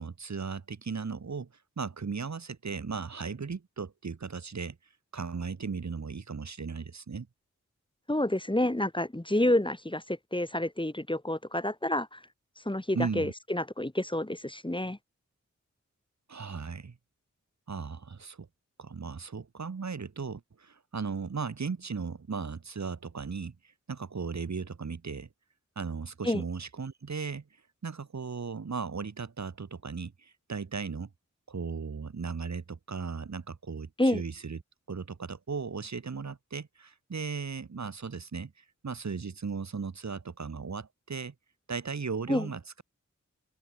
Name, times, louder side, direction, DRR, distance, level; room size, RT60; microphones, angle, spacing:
voice 1, 0.0-1.5 1.8-4.8 5.1-7.3 12.9-13.3 16.3-17.0 17.7-18.5 18.8-23.6 23.9-25.3 25.8-27.4 27.8-31.1 31.5-34.6 34.9-41.3 41.7-42.8, right 5 dB, 70° right, 2.5 m, -36 dB
voice 2, 8.1-12.2 12.7-15.0 26.2-26.4 34.0-34.2 42.3-42.5, left 1 dB, 15° left, 5.4 m, -29 dB
open air
cardioid pair, 50°, 29 cm